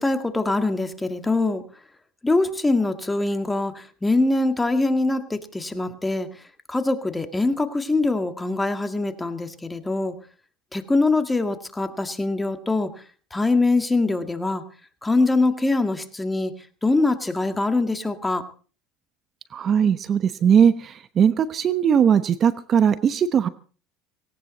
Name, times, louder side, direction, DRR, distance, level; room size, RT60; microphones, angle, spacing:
voice 1, 0.0-1.6 2.2-6.3 6.7-10.1 10.7-12.9 13.3-14.6 15.0-16.5 16.8-18.4, left 2 dB, 10° left, 8 dB, 1.9 m, -23 dB
voice 2, 19.5-20.7 21.2-23.5, right 8 dB, 40° right, 14 dB, 0.9 m, -19 dB
18.0 x 17.5 x 4.1 m, 0.39 s
supercardioid pair, 90°, 0 cm